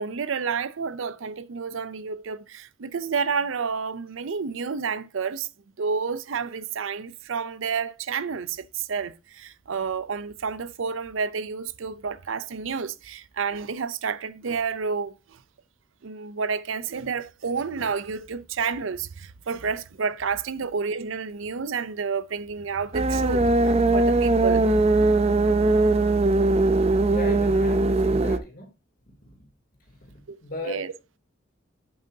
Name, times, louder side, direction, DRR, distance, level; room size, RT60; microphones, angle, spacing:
voice 1, 0.0-5.5 5.8-15.4 16.0-24.7 30.3-30.4 30.6-30.9, right 5 dB, 70° right, 0.6 m, -30 dB
sound 1, 22.9-28.4, right 2 dB, 30° right, 0.5 m, -20 dB
voice 2, 27.1-28.7 29.1-29.4 29.8-29.9 30.4-30.8, left 1 dB, 45° left, 2.9 m, -36 dB
8.8 x 7.7 x 2.7 m
head